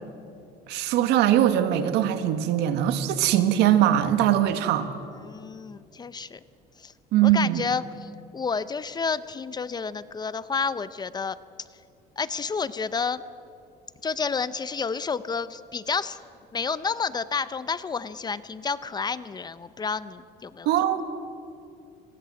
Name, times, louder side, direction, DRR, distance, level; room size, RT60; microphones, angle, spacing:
voice 1, 0.7-4.9 7.1-7.6 20.7-21.0, right 11 dB, 75° right, 9 dB, 1.9 m, -21 dB
voice 2, 5.2-6.4 6.8-6.9 7.2-11.4 12.2-13.2 14.0-16.2 16.5-20.7, left 5 dB, 25° left, 15 dB, 0.7 m, -30 dB
27.5 x 20.0 x 7.8 m, 2.5 s
cardioid pair, 125°, 18 cm